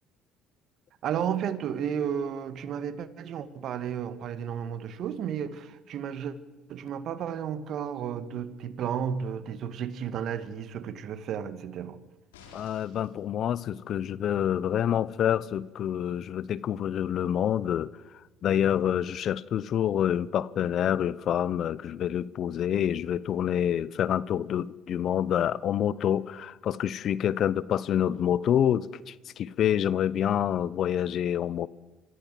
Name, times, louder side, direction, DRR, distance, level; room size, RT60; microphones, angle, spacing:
voice 1, 1.0-6.3 6.7-12.0, right 8 dB, 60° right, 1.5 m, -33 dB
sound 1, 12.3-13.2 14.7-14.8, left 5 dB, 90° left, 3.3 m, -52 dB
voice 2, 12.5-17.9 18.4-31.7, left 10 dB, 55° left, 0.6 m, -27 dB
24.0 x 14.5 x 7.7 m
hypercardioid pair, 65°, 0 cm